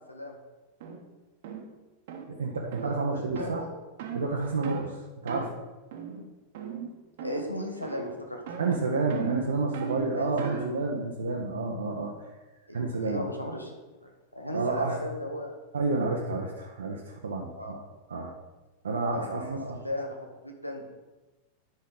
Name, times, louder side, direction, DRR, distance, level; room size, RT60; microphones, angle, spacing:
sound 1, 0.8-1.0 1.4-1.7 2.1-2.3 2.7-2.9 3.4-3.6 4.0-4.3 4.6-4.9 5.3-5.5 5.9-6.3 6.5-6.9 7.2-7.6 7.8-8.2 8.5-10.8, right 7 dB, 55° right, 1.2 m, -37 dB
voice 1, 2.3-3.6 4.1-5.5 8.6-12.3 12.7-13.2 14.5-15.0 15.7-17.8 18.1-18.3 18.8-19.8, right 3 dB, 70° right, -1 dB, 0.9 m, -30 dB
voice 2, 2.8-3.6 7.2-8.4 10.1-10.7 12.7-15.5 17.6-17.8 19.1-20.9, left 1 dB, 85° left, 2 dB, 1.3 m, -37 dB
10.5 x 5.6 x 3.9 m, 1.1 s
figure-of-eight pair, 90°, 0 cm